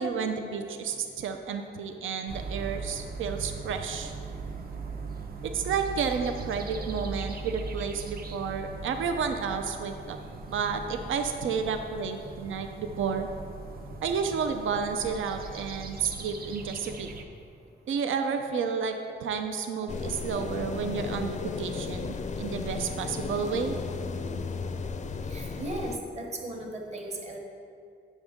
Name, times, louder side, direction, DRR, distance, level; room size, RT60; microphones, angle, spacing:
voice 1, 0.0-4.1 5.5-10.2 10.5-13.3 14.0-17.1 17.9-18.9 19.2-23.8, right 6 dB, 90° right, 6 dB, 0.5 m, -31 dB
sound 1, 2.3-17.2, right 4 dB, 50° right, 0.6 m, -39 dB
sound 2, 19.9-26.0, left 4 dB, 40° left, 0.4 m, -34 dB
voice 2, 25.3-27.4, right 1 dB, 35° right, 1 dB, 1.0 m, -36 dB
8.1 x 6.6 x 3.6 m, 2.4 s
wide cardioid pair, 140°, 20 cm